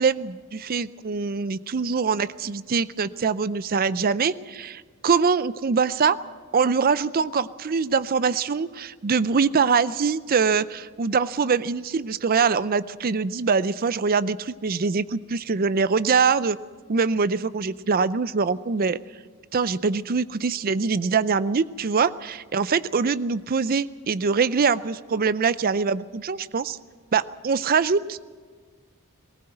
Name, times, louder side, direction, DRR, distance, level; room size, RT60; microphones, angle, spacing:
voice 1, 0.0-6.2 6.5-16.6 16.9-19.0 19.5-26.8 27.1-28.2, right 5 dB, 40° right, 16 dB, 0.5 m, -23 dB
19.5 x 18.0 x 7.8 m, 1.5 s
head